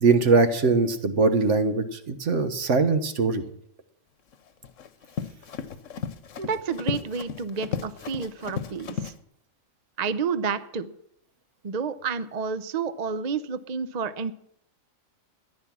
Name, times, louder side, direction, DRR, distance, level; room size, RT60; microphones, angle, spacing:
voice 1, 0.0-3.4, right 4 dB, 60° right, 9 dB, 1.5 m, -21 dB
Run, 4.3-9.2, left 7 dB, 65° left, 1.2 m, -34 dB
voice 2, 6.4-9.1 10.0-10.9 11.6-14.3, right 5 dB, 45° right, 12 dB, 0.6 m, -30 dB
14.0 x 10.5 x 6.1 m, 0.73 s
omnidirectional pair, 1.4 m